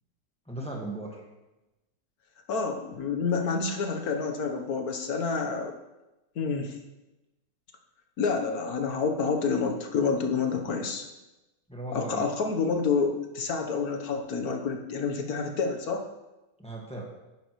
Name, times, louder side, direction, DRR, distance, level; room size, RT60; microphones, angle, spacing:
voice 1, 0.5-1.2 11.7-12.3 16.6-17.0, right 1 dB, 5° left, -2 dB, 1.5 m, -37 dB
voice 2, 2.5-5.8 6.3-6.8 8.2-11.1 11.9-16.1, left 5 dB, 60° left, 4 dB, 1.5 m, -28 dB
10.5 x 10.0 x 3.1 m, 1.0 s
omnidirectional pair, 1.8 m